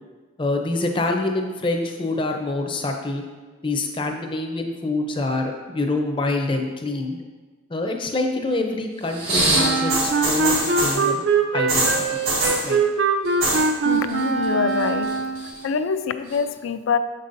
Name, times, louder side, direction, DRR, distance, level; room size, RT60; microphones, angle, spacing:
voice 1, 0.4-3.2 3.6-7.2 7.7-11.3 11.5-12.2 12.6-12.8, left 2 dB, 25° left, 3 dB, 0.5 m, -26 dB
sound 1, 9.1-11.1 11.7-12.7 13.2-13.7 13.9-14.4 14.8-15.6 16.3-16.4, right 1 dB, 90° right, 1.7 m, -23 dB
Wind instrument woodwind instrument, 9.5-15.6, right 4 dB, 65° right, 0.4 m, -22 dB
voice 2, 13.8-15.2 15.4-17.0, left 5 dB, 85° left, 11 dB, 0.3 m, -25 dB
7.1 x 5.4 x 2.6 m, 1.3 s
head